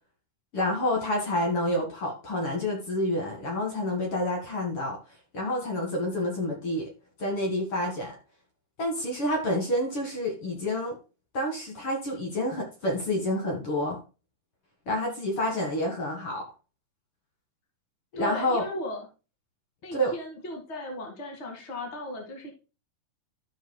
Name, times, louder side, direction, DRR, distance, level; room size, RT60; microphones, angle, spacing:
voice 1, 0.5-5.0 5.3-6.9 7.2-8.1 8.8-11.0 11.3-14.0 14.9-16.5 18.1-18.6 19.9-20.1, left 1 dB, 50° left, 1 dB, 2.7 m, -28 dB
voice 2, 18.2-19.1 19.8-22.5, left 1 dB, 25° left, 2 dB, 2.2 m, -36 dB
14.5 x 5.9 x 2.2 m, 0.31 s
omnidirectional pair, 3.4 m